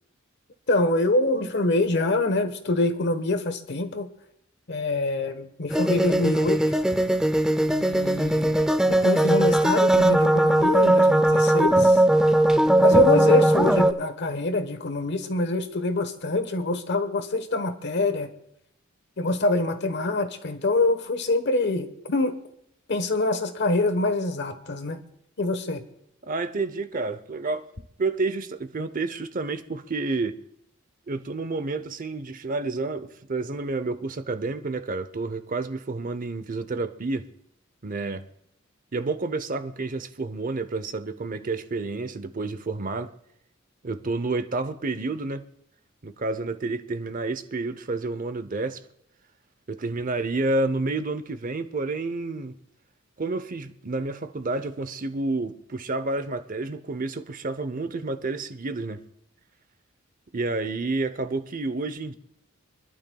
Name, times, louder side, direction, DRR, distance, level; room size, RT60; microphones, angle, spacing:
voice 1, 0.7-4.1 4.7-6.8 7.7-8.6 8.8-18.3 19.2-22.4 22.9-25.0 25.4-25.8, left 2 dB, 55° left, 1.1 m, -25 dB
sound 1, 5.7-13.9, right 1 dB, 5° right, 0.5 m, -19 dB
voice 2, 26.2-27.7 28.0-30.4 31.1-37.3 37.8-38.3 38.9-43.1 43.8-45.4 46.0-48.8 49.7-52.6 53.2-59.0 60.3-62.1, right 3 dB, 40° right, 0.7 m, -29 dB
26.5 x 12.0 x 2.3 m
head